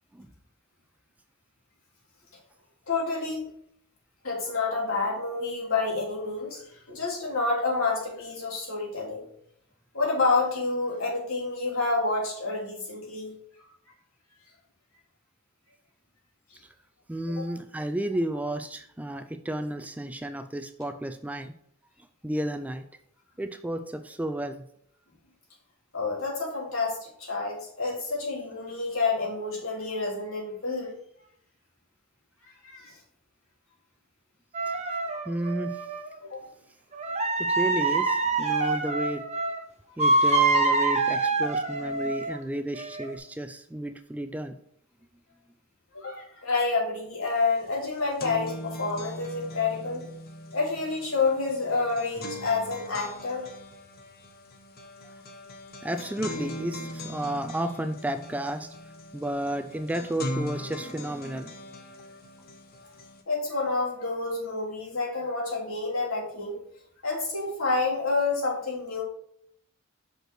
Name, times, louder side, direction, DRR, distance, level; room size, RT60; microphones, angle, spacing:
voice 1, 2.9-3.5 4.2-6.6 6.9-9.2 9.9-13.3 17.4-17.5 25.9-30.9 32.6-32.9 36.3-36.4 45.9-50.0 50.5-53.5 63.3-66.6 67.0-69.0, left 3 dB, 75° left, -3 dB, 2.9 m, -28 dB
voice 2, 17.1-21.5 22.2-22.8 23.4-24.6 34.7-35.0 35.3-35.9 37.4-39.2 40.0-44.5 55.8-58.7 59.1-61.5, right 1 dB, 5° right, 9 dB, 0.3 m, -32 dB
sound 1, 34.5-36.1 37.0-39.6 40.0-42.3 42.8-43.1, right 3 dB, 35° right, 0.9 m, -25 dB
sound 2, 47.3-47.4 47.7-63.2, left 1 dB, 45° left, 0.9 m, -40 dB
6.0 x 5.3 x 4.7 m, 0.69 s
head